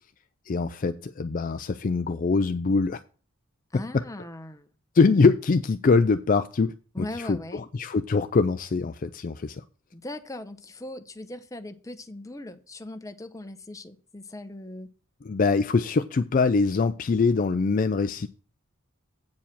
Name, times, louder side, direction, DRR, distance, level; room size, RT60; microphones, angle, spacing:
voice 1, 0.5-3.0 3.7-4.0 4.9-9.6 15.2-18.3, left 4 dB, 40° left, 0.4 m, -23 dB
voice 2, 3.7-4.7 6.9-7.6 9.9-14.9, left 1 dB, 15° left, 0.7 m, -39 dB
8.4 x 4.8 x 7.4 m
head